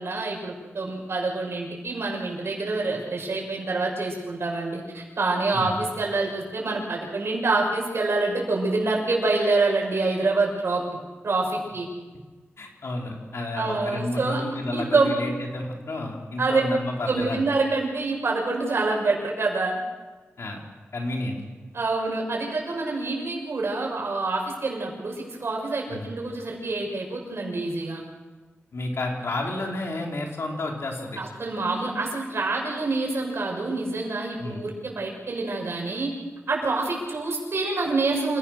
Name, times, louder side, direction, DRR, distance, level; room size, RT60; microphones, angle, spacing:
voice 1, 0.0-10.8 11.2-11.9 13.5-14.4 14.7-15.1 16.4-16.6 17.1-19.8 21.7-28.0 31.2-36.1 36.5-38.4, right 3 dB, 65° right, 0 dB, 6.5 m, -26 dB
voice 2, 12.6-17.4 20.4-20.6 20.9-21.4 25.9-26.1 28.7-31.2 34.4-34.6, left 2 dB, 75° left, 0 dB, 4.6 m, -31 dB
28.0 x 17.0 x 6.7 m, 1.3 s
wide cardioid pair, 105°, 5 cm